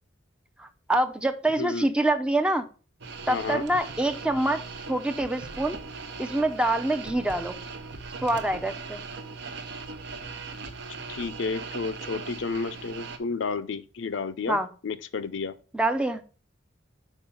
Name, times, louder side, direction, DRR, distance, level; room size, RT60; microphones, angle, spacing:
voice 1, 0.6-2.7 3.3-4.6 4.9-5.8 6.2-7.6 8.2-9.0 14.5-14.7 15.7-16.2, right 1 dB, 5° right, 0.5 m, -25 dB
voice 2, 1.6-1.9 3.3-3.6 11.1-14.6 14.8-15.5, left 4 dB, 70° left, 0.5 m, -31 dB
sound 1, 3.0-13.2, right 4 dB, 60° right, 0.8 m, -39 dB
5.5 x 4.6 x 5.6 m
head